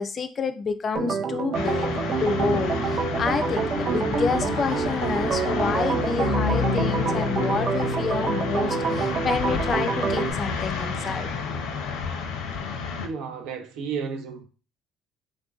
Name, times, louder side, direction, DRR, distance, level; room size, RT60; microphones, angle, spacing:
voice 1, 0.0-1.9 2.2-11.3, left 5 dB, 35° left, 0.3 m, -28 dB
Organ, 0.9-10.3, right 5 dB, 45° right, 0.4 m, -27 dB
sound 1, 1.5-13.1, left 4 dB, 85° left, 0.5 m, -29 dB
voice 2, 13.0-14.4, right 6 dB, 85° right, 0.7 m, -32 dB
3.4 x 2.5 x 2.3 m
cardioid pair, 125°, 0 cm